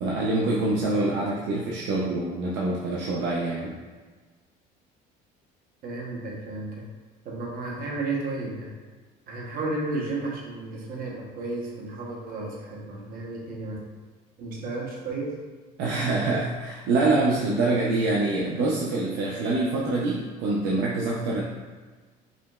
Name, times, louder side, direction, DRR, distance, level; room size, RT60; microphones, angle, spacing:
voice 1, 0.0-3.8 15.8-21.4, right 2 dB, 70° right, -4 dB, 0.6 m, -25 dB
voice 2, 5.8-6.9 7.2-8.7 9.3-13.8 14.4-15.4, right 2 dB, 50° right, -2 dB, 1.0 m, -33 dB
5.0 x 2.9 x 2.3 m, 1.4 s
cardioid pair, 125°, 19 cm